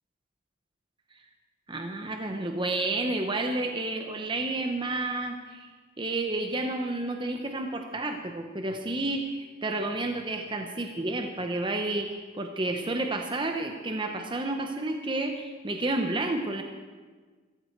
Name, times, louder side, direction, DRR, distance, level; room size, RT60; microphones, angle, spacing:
voice 1, 1.7-5.7 6.0-16.6, right 2 dB, 25° right, 5 dB, 0.9 m, -30 dB
15.5 x 15.0 x 4.6 m, 1.4 s
head